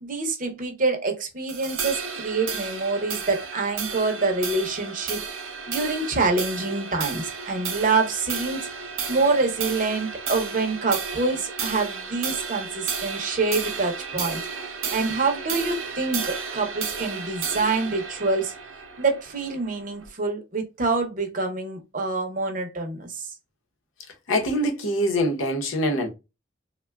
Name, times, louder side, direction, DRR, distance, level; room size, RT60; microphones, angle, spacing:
voice 1, 0.0-5.2 5.7-8.7 9.1-14.4 14.9-18.5 19.0-23.3, right 3 dB, 40° right, 0.6 m, -26 dB
sound 1, 1.5-20.1, right 5 dB, 85° right, 0.6 m, -33 dB
voice 2, 24.3-26.1, equal, 80° left, 0.8 m, -24 dB
3.5 x 2.2 x 2.2 m
head